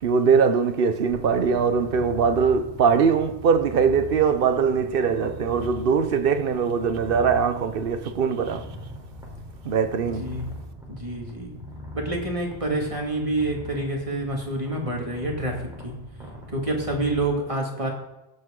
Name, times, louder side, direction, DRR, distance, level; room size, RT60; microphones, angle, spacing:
voice 1, 0.0-8.8 9.6-10.4, right 6 dB, 60° right, 0.9 m, -22 dB
Purr, 1.1-17.2, left 1 dB, 5° right, 3.5 m, -40 dB
voice 2, 10.9-11.5 11.9-15.9 16.5-17.9, right 2 dB, 30° right, 2.4 m, -27 dB
16.5 x 7.9 x 3.8 m
omnidirectional pair, 1.1 m